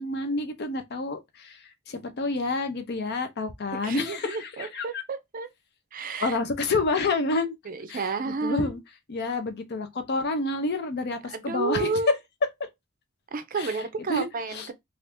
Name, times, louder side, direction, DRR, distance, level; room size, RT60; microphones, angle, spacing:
voice 1, 0.0-5.0 6.2-7.6 7.9-8.8 9.1-11.9 13.6-13.7 14.1-14.7, left 3 dB, 55° left, 0.6 m, -29 dB
voice 2, 3.8-5.5 5.9-6.4 7.7-8.8 11.3-12.1 13.3-14.7, right 4 dB, 45° right, 0.5 m, -31 dB
2.7 x 2.4 x 3.4 m
head